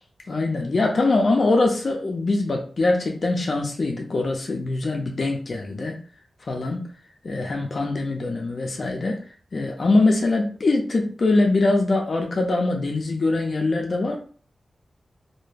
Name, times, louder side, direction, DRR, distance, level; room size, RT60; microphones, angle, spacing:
voice 1, 0.3-6.0 6.4-6.9 7.2-9.2 9.5-14.2, left 2 dB, 55° left, 1 dB, 0.5 m, -23 dB
2.3 x 2.1 x 3.2 m, 0.41 s
wide cardioid pair, 80°, 0 cm